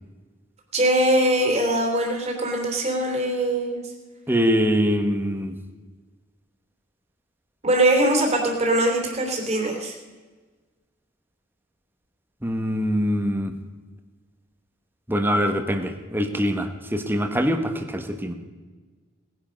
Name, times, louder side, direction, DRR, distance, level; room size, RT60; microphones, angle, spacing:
voice 1, 0.7-3.8 7.6-9.9, right 1 dB, 35° right, 2 dB, 3.1 m, -22 dB
voice 2, 4.3-5.6 12.4-13.5 15.1-18.3, equal, 10° right, 7 dB, 1.2 m, -23 dB
18.5 x 10.5 x 5.2 m, 1.3 s
head